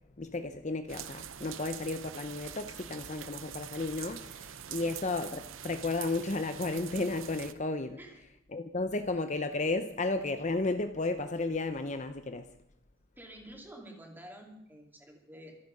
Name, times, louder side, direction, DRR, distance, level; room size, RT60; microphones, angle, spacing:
voice 1, 0.2-8.0 8.5-12.5, left 2 dB, 35° left, 0.7 m, -33 dB
sound 1, 0.9-7.5, right 9 dB, 75° right, 0.8 m, -44 dB
voice 2, 13.2-15.6, right 1 dB, 10° right, 2.8 m, -49 dB
25.0 x 8.4 x 5.4 m
head